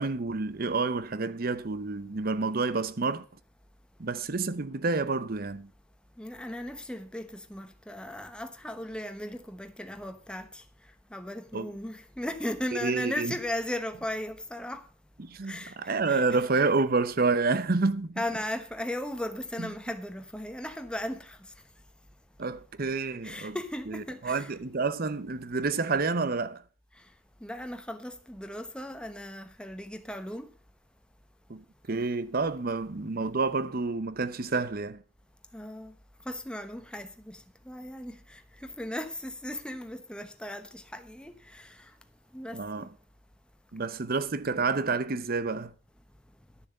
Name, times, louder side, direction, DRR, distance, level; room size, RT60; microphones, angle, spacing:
voice 1, 0.0-3.2 4.0-5.7 11.5-11.7 12.8-13.3 15.2-18.2 22.4-23.6 23.9-26.6 31.5-35.0 42.5-42.9 43.7-45.7, right 3 dB, 50° right, 0.8 m, -29 dB
voice 2, 6.2-10.6 11.1-14.8 15.5-16.4 18.2-21.4 23.2-24.6 27.4-30.5 35.5-35.9 36.3-37.4 37.7-41.7 42.3-42.9, left 1 dB, 5° left, 1.0 m, -37 dB
12.0 x 7.1 x 6.5 m
head